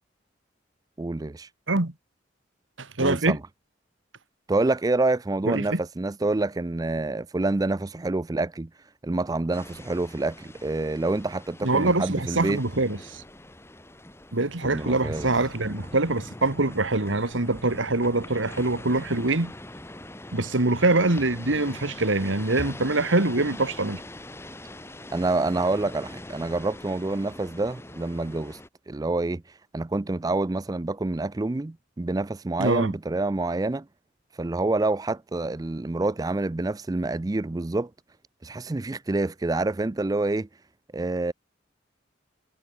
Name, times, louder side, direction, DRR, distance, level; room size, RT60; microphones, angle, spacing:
voice 1, 1.0-1.5 3.0-3.4 4.5-8.7 9.0-12.6 14.6-15.3 25.1-28.6 28.9-29.4 29.7-33.9 34.4-37.9 38.4-40.5 40.9-41.3, right 2 dB, 20° right, 0.4 m, -27 dB
voice 2, 2.8-3.4 5.4-5.8 11.6-13.2 14.3-19.5 20.3-24.0 32.6-32.9, right 2 dB, 90° right, 2.1 m, -24 dB
sound 1, 9.5-28.7, left 1 dB, 15° left, 1.9 m, -42 dB
head